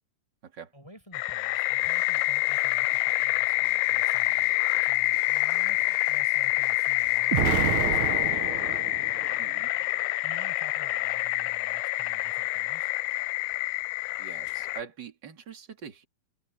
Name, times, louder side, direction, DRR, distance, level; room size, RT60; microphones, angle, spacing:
voice 1, 0.7-8.5 10.2-12.9, equal, 5° left, 6.1 m, -51 dB
sound 1, 1.1-14.8, left 21 dB, 80° left, 2.2 m, -27 dB
sound 2, 1.8-7.7, right 1 dB, 10° right, 4.4 m, -56 dB
Explosion, 7.3-9.5, right 12 dB, 65° right, 2.0 m, -29 dB
voice 2, 9.4-9.7 14.2-16.0, right 7 dB, 35° right, 2.7 m, -43 dB
omnidirectional pair, 4.1 m